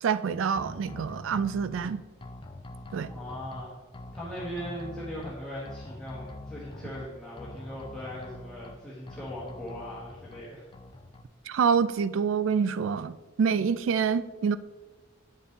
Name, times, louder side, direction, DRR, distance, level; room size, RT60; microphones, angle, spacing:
voice 1, 0.0-2.0 2.9-3.1 11.5-14.6, right 6 dB, 85° right, 0.3 m, -26 dB
sound 1, 0.6-1.9 2.2-3.6 3.9-5.3 5.7-7.0 7.4-8.8 9.1-10.4 10.7-11.2, left 2 dB, 25° left, 0.5 m, -44 dB
voice 2, 3.1-3.7 4.1-10.6, equal, 5° left, 1.5 m, -39 dB
9.4 x 6.4 x 3.3 m
head